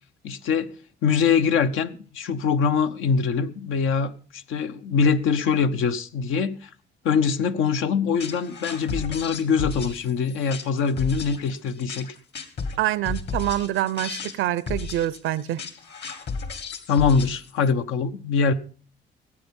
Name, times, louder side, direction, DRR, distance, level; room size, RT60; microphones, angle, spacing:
voice 1, 0.2-0.7 1.0-6.7 7.0-12.1 16.9-18.5, left 6 dB, 85° left, 0.9 m, -23 dB
sound 1, 8.2-17.7, left 4 dB, 60° left, 2.3 m, -34 dB
voice 2, 12.8-15.6, right 13 dB, 85° right, 0.7 m, -26 dB
18.0 x 8.5 x 5.4 m
cardioid pair, 90°, 20 cm